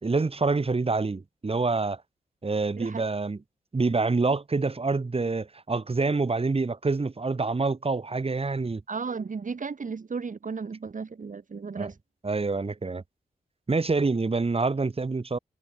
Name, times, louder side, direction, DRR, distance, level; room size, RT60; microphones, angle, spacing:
voice 1, 0.0-2.0 2.4-3.4 3.7-8.8 11.8-11.9 12.2-13.0 13.7-15.4, right 3 dB, 40° right, 2.9 m, -26 dB
voice 2, 8.9-12.0, right 5 dB, 55° right, 4.3 m, -34 dB
wide cardioid pair, 80°, 15 cm